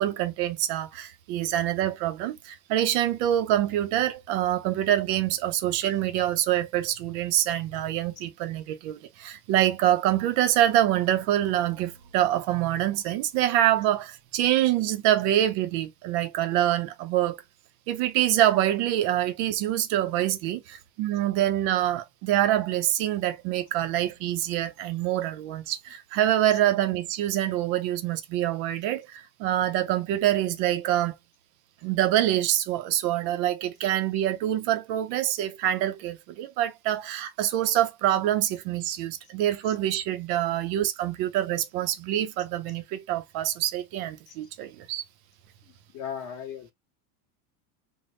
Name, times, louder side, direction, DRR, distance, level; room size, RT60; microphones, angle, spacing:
voice 1, 0.0-17.4 17.9-31.1 31.8-45.0, right 12 dB, 40° right, 0.4 m, -25 dB
voice 2, 45.6-46.7, left 8 dB, 40° left, 1.3 m, -38 dB
3.4 x 2.0 x 3.8 m
supercardioid pair, 165°, 46 cm